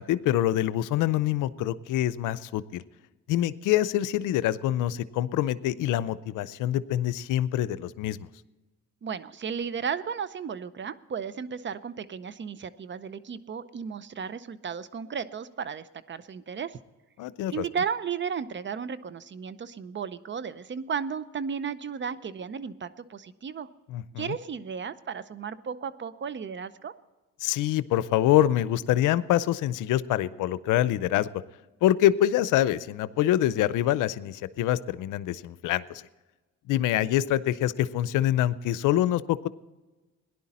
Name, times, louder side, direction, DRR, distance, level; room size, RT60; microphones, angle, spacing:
voice 1, 0.0-2.8 3.3-8.3 17.2-17.6 23.9-24.4 27.4-31.3 31.8-36.1 36.7-39.5, left 13 dB, 85° left, 16 dB, 0.6 m, -25 dB
voice 2, 9.0-16.8 17.5-23.7 24.2-26.9, right 6 dB, 40° right, 16 dB, 0.7 m, -34 dB
17.5 x 11.0 x 4.3 m, 1.2 s
cardioid pair, 90°, 30 cm